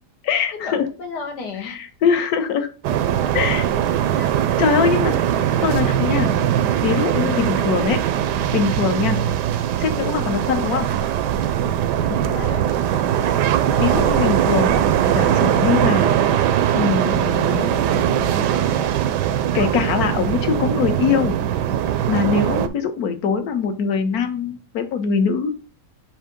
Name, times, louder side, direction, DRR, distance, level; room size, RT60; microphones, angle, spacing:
voice 1, 0.2-0.9 1.6-2.7 3.3-3.7 4.6-6.3 6.8-8.0 8.5-9.2 9.8-10.9 13.7-16.2 16.7-18.4 19.5-21.4 22.1-25.5, left 6 dB, 65° left, 8 dB, 1.3 m, -22 dB
voice 2, 1.0-1.8 4.2-4.4 7.3-7.6 9.0-9.4 12.1-12.6 22.2-22.6, left 5 dB, 85° left, 4 dB, 1.8 m, -33 dB
sound 1, 2.8-22.7, right 10 dB, 85° right, 1.2 m, -20 dB
7.2 x 2.7 x 5.1 m, 0.35 s
omnidirectional pair, 1.8 m